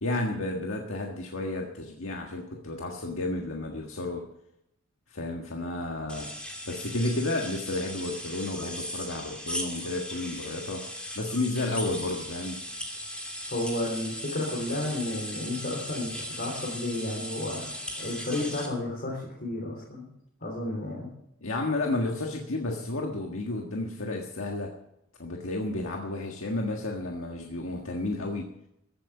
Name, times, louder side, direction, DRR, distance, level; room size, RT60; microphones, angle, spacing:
voice 1, 0.0-4.2 5.1-6.3 6.7-10.8 11.1-12.6 21.4-24.7 25.2-28.5, left 2 dB, 80° left, 1 dB, 1.7 m, -32 dB
sound 1, 6.1-18.7, equal, 5° left, 2.8 m, -38 dB
voice 2, 13.5-20.1 20.4-21.1, left 1 dB, 50° left, -3 dB, 3.6 m, -32 dB
15.0 x 8.9 x 7.1 m, 0.79 s
head